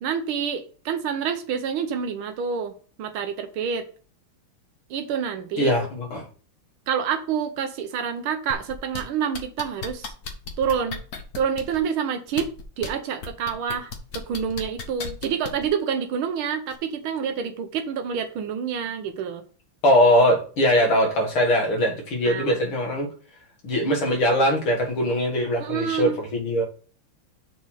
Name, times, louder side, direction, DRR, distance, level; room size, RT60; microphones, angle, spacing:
voice 1, 0.0-2.7 3.0-3.9 4.9-5.7 6.9-10.1 10.6-11.0 11.3-19.4 22.3-22.6 25.6-26.2, right 7 dB, 85° right, 1.6 m, -28 dB
voice 2, 5.6-6.2 19.8-23.1 23.6-26.6, equal, 75° left, 2.8 m, -21 dB
sound 1, 8.5-9.0 9.3-11.8 12.3-12.9 13.2-15.7 16.7-16.8, left 5 dB, 50° left, 1.6 m, -34 dB
6.7 x 4.0 x 6.3 m
omnidirectional pair, 2.3 m